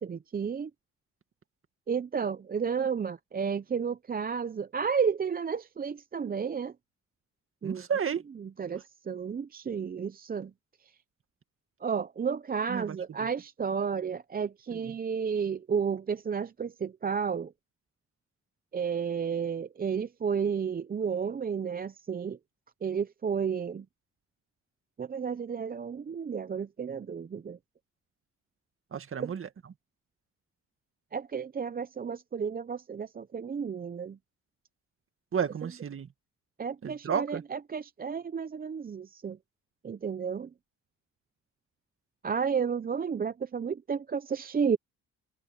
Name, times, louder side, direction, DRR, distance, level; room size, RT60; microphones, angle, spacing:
voice 1, 0.0-0.7 1.9-6.7 7.6-7.9 8.4-10.5 10.8-10.9 11.8-17.5 18.7-22.4 22.8-23.9 25.0-27.6 29.2-29.3 31.1-34.2 36.6-39.4 39.8-40.5 42.2-44.8, right 6 dB, 30° right, 0.7 m, -32 dB
voice 2, 7.6-8.2 12.7-13.3 14.7-14.9 28.9-29.5 35.3-36.1 36.8-37.4, right 7 dB, 45° right, 2.1 m, -32 dB
cardioid pair, 90°, 30 cm